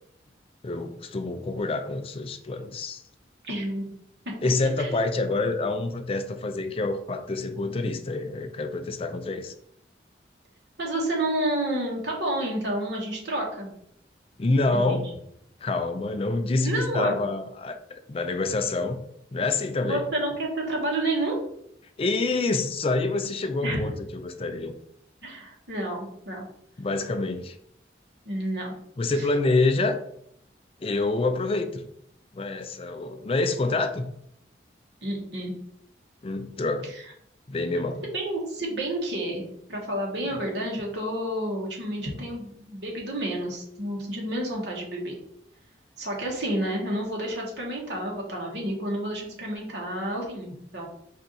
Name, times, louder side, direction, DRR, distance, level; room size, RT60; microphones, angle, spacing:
voice 1, 0.6-3.0 4.4-9.5 14.4-15.1 15.6-19.0 19.3-20.0 22.0-24.7 26.8-27.5 29.0-30.0 30.8-31.8 32.3-34.1 36.2-36.9 37.5-38.0 40.3-40.4, left 3 dB, 30° left, 8 dB, 0.4 m, -27 dB
voice 2, 3.4-3.9 4.2-4.3 4.8-5.0 10.8-13.7 14.7-15.0 16.6-17.2 19.8-21.4 23.6-23.8 25.2-26.5 28.2-28.7 29.2-29.3 35.0-35.5 36.9-37.0 38.1-45.2 46.0-50.9, right 1 dB, 70° right, -1 dB, 1.4 m, -30 dB
4.6 x 2.7 x 4.0 m, 0.72 s
head